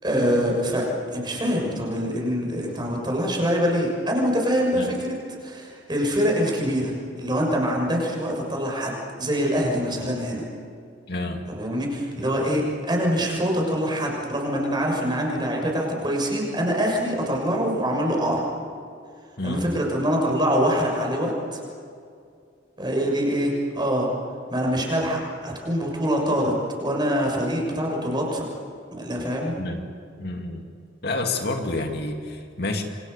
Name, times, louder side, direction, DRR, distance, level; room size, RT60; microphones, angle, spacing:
voice 1, 0.0-10.4 11.5-18.4 19.4-21.6 22.8-24.1 24.5-28.4 28.9-29.6, equal, 25° right, 0 dB, 6.6 m, -24 dB
voice 2, 11.1-11.4 19.4-19.9 29.6-29.8 30.2-30.7 31.0-32.8, left 2 dB, 60° left, 3 dB, 2.4 m, -29 dB
28.5 x 25.5 x 6.8 m, 2.4 s
head